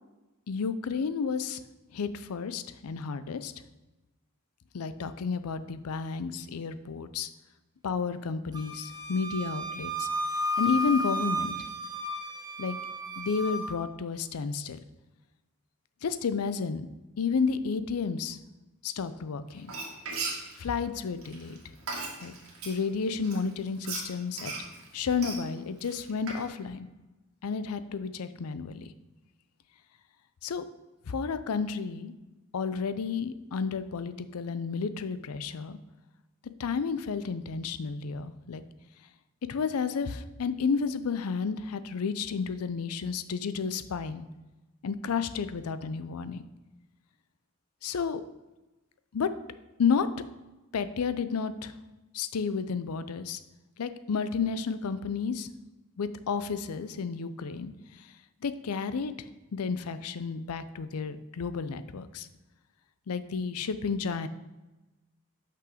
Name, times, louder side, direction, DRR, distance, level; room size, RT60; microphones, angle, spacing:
voice 1, 0.5-1.6 1.9-3.5 4.7-7.3 7.8-10.1 10.6-11.6 12.6-12.8 13.2-14.8 16.0-16.9 17.2-18.4 18.8-19.7 20.6-21.6 22.2-22.3 22.6-24.5 24.9-26.9 27.4-28.9 30.4-30.6 31.1-32.1 32.5-35.8 36.6-38.6 39.5-44.3 44.8-46.4 47.8-48.2 49.1-49.3 49.8-50.1 50.7-51.7 52.1-53.4 53.8-55.5 56.0-58.1 58.4-59.3 59.5-62.3 63.1-64.3, left 5 dB, 85° left, 13 dB, 0.5 m, -31 dB
Wind instrument woodwind instrument, 8.5-13.8, equal, 20° right, 0.7 m, -33 dB
Frying (food), 19.6-22.8 23.2-26.5, right 3 dB, 75° right, 1.8 m, -37 dB
6.1 x 5.7 x 4.9 m, 1.1 s
head